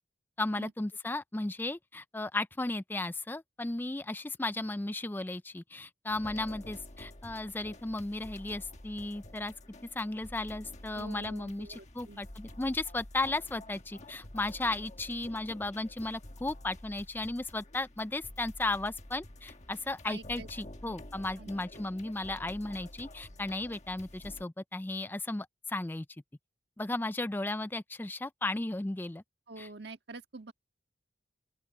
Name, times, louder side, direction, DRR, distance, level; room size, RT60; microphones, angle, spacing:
voice 1, 0.4-9.5 9.9-26.1 26.8-29.2 29.6-29.7, left 2 dB, 10° left, 0.4 m, -35 dB
sound 1, 6.1-24.4, left 1 dB, 40° left, 1.4 m, -49 dB
voice 2, 10.9-12.2 20.1-20.5 20.8-20.9 21.4-21.5 29.5-30.5, right 3 dB, 60° right, 1.6 m, -46 dB
open air
head